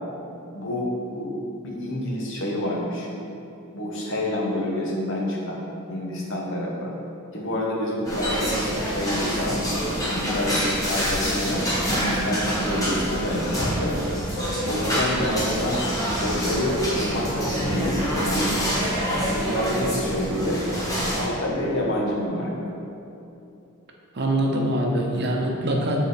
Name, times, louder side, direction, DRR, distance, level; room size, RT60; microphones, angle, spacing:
voice 1, 0.5-1.4 1.6-3.1 3.7-5.6 5.9-6.9 7.3-9.6 10.1-14.0 14.7-15.8 16.2-18.7 19.1-20.6 21.2-22.7, left 1 dB, 60° left, -4 dB, 1.2 m, -28 dB
sound 1, 8.0-21.2, equal, 15° left, 1.2 m, -26 dB
voice 2, 24.1-26.0, right 1 dB, 50° right, 0 dB, 0.7 m, -23 dB
7.5 x 3.7 x 4.0 m, 2.8 s
head